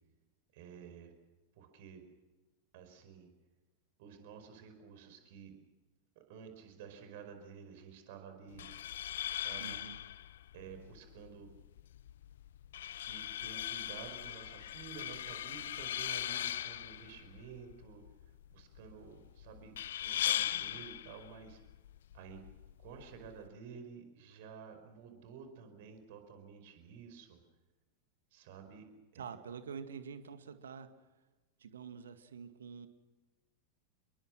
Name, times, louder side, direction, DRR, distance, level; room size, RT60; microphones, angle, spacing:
voice 1, 0.5-1.1 1.6-2.0 2.7-3.3 4.0-5.5 6.1-8.7 9.0-9.7 10.5-11.5 12.9-18.0 18.5-21.6 22.1-22.4 22.8-27.4 28.3-28.9 29.1-29.3, right 6 dB, 50° right, 7 dB, 5.1 m, -52 dB
sound 1, 8.5-23.5, left 11 dB, 60° left, 0.7 m, -40 dB
voice 2, 9.6-10.0 29.1-30.9 31.6-32.9, right 6 dB, 65° right, 10 dB, 2.1 m, -46 dB
28.0 x 22.5 x 6.3 m, 1.2 s
figure-of-eight pair, 90°, 0 cm